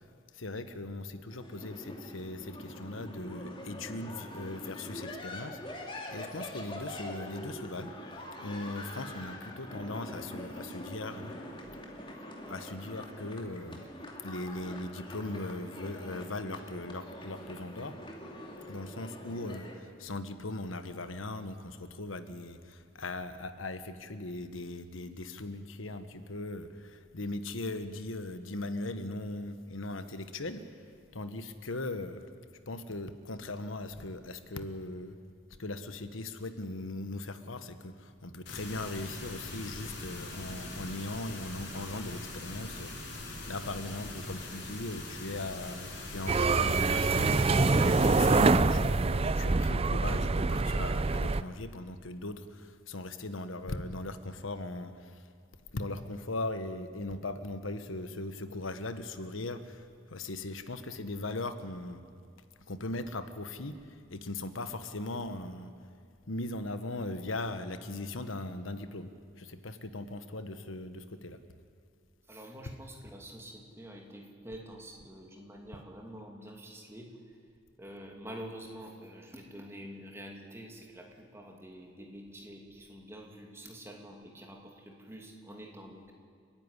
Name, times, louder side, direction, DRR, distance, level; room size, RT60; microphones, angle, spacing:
voice 1, 0.3-7.9 8.4-11.3 12.5-13.8 14.2-17.9 18.7-30.6 31.1-32.2 32.7-35.2 35.6-55.2 55.7-62.0 62.7-65.7 66.3-69.1 69.4-71.4, left 2 dB, 85° left, 10 dB, 1.3 m, -39 dB
sound 1, 1.3-19.7, left 1 dB, 25° left, 2.5 m, -44 dB
sound 2, 38.5-48.5, left 2 dB, 55° left, 4.4 m, -42 dB
sound 3, 46.3-51.4, right 3 dB, 30° right, 0.5 m, -25 dB
voice 2, 72.3-77.4 77.8-86.1, equal, 15° right, 1 dB, 2.6 m, -47 dB
30.0 x 10.5 x 9.8 m, 2.3 s
head